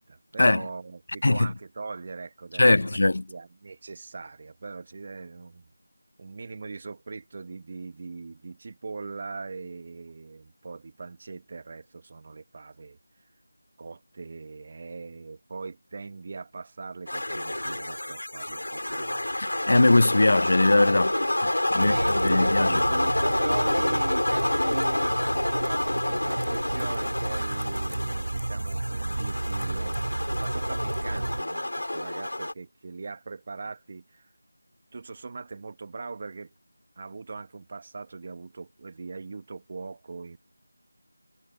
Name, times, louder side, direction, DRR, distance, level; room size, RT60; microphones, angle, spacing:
voice 1, 0.0-3.0 3.3-5.7 6.2-13.0 13.8-19.4 21.7-34.3 34.9-36.5 37.0-40.4, right 4 dB, 35° right, 1.4 m, -40 dB
voice 2, 2.6-3.2 19.4-21.2 21.4-23.0, left 2 dB, 55° left, 0.7 m, -21 dB
sound 1, 17.1-32.5, left 1 dB, 80° left, 3.3 m, -28 dB
sound 2, 21.8-31.4, right 2 dB, 50° right, 1.3 m, -32 dB
figure-of-eight pair, 170°, 0 cm